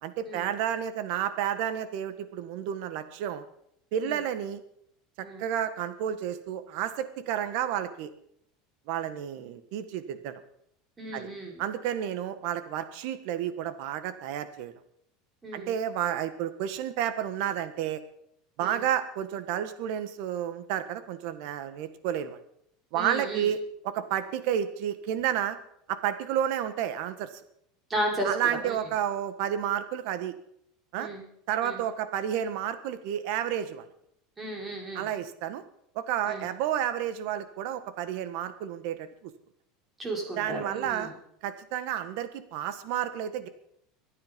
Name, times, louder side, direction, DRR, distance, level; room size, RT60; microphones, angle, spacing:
voice 1, 0.0-3.4 3.9-4.6 5.4-8.1 8.9-10.3 11.1-11.3 11.6-14.7 15.5-18.0 18.6-22.4 22.9-25.6 25.9-27.3 28.2-30.3 30.9-31.1 31.5-33.9 34.9-35.6 35.9-39.3 40.4-41.1 41.4-43.5, right 10 dB, 65° right, 11 dB, 1.6 m, -31 dB
voice 2, 11.0-11.6 15.4-15.7 18.6-18.8 22.9-23.5 27.9-28.3 28.6-28.8 31.0-31.2 31.6-31.8 34.4-35.1 36.3-36.4 40.0-41.1, right 1 dB, 15° right, 0 dB, 5.0 m, -34 dB
24.0 x 9.5 x 5.3 m, 0.73 s
supercardioid pair, 145°, 0 cm